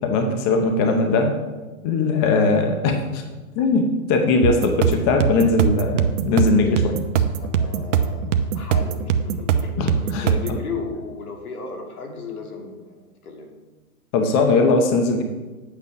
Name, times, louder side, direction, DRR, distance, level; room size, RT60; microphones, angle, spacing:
voice 1, 0.0-1.4 1.8-3.2 3.6-7.0 9.8-10.3 14.1-15.2, left 3 dB, 20° left, 4 dB, 0.7 m, -20 dB
sound 1, 4.4-10.6, right 7 dB, 55° right, 0.9 m, -22 dB
voice 2, 7.4-13.5, left 4 dB, 75° left, 2 dB, 2.7 m, -35 dB
10.5 x 8.6 x 4.7 m, 1.2 s
hypercardioid pair, 150°, 44 cm